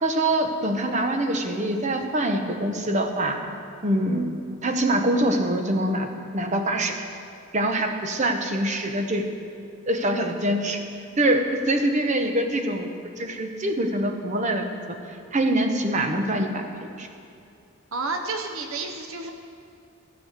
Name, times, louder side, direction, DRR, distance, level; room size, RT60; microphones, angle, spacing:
voice 1, 0.0-3.4 3.8-4.3 4.6-7.1 7.5-9.3 9.9-10.8 11.2-12.9 13.2-15.0 15.3-17.1, right 1 dB, 35° right, 5 dB, 0.9 m, -24 dB
voice 2, 17.9-19.3, right 3 dB, 75° right, 4 dB, 0.9 m, -30 dB
14.5 x 5.6 x 8.1 m, 2.5 s
head